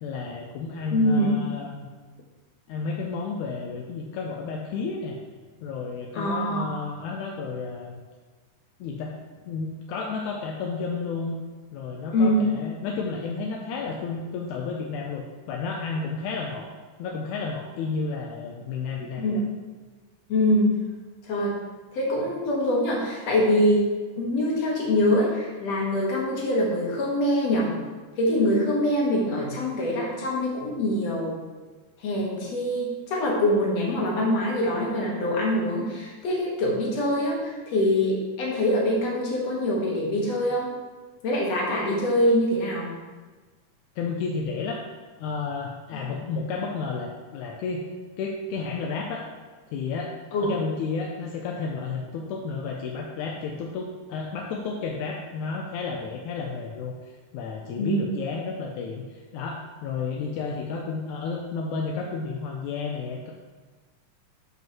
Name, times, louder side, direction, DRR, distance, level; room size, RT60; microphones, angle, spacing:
voice 1, 0.0-1.9 2.7-5.2 5.6-8.0 8.8-9.2 9.4-11.3 11.7-16.7 17.0-19.4 44.0-44.8 45.2-47.9 48.2-49.3 49.7-50.1 50.4-56.9 57.3-63.3, left 4 dB, 80° left, 0 dB, 2.0 m, -32 dB
voice 2, 0.9-1.4 6.1-6.7 12.1-12.4 19.2-19.4 20.3-20.8 21.2-21.6 21.9-27.7 28.2-31.4 32.0-40.7 41.2-42.9 45.9-46.0 50.3-50.5 57.8-58.0, left 1 dB, 60° left, -3 dB, 2.7 m, -24 dB
12.0 x 5.2 x 3.1 m, 1.4 s
omnidirectional pair, 3.6 m